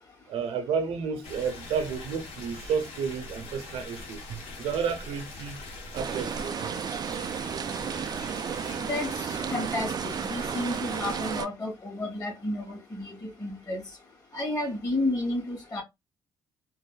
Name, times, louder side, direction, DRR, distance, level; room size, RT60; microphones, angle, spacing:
voice 1, 0.3-5.6 5.9-6.8, right 6 dB, 75° right, 0.8 m, -31 dB
sound 1, 1.2-11.4, left 3 dB, 75° left, 1.2 m, -42 dB
sound 2, 6.0-11.5, right 8 dB, 40° right, 0.3 m, -33 dB
voice 2, 8.9-13.8 14.3-15.8, left 2 dB, 35° left, 2.4 m, -31 dB
4.0 x 2.5 x 2.3 m
supercardioid pair, 60°, 10 cm